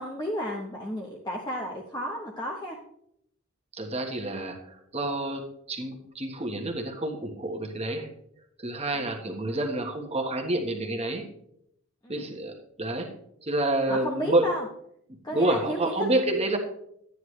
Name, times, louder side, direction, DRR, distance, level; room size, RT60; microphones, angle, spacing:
voice 1, 0.0-2.8 12.0-12.3 13.9-14.7 15.2-16.1, equal, 20° left, -1 dB, 1.0 m, -33 dB
voice 2, 3.7-8.1 8.6-11.3 12.1-12.5 12.8-13.1 13.4-14.5 15.3-16.6, right 2 dB, 30° right, 2 dB, 1.3 m, -28 dB
12.5 x 9.7 x 3.2 m, 0.75 s
head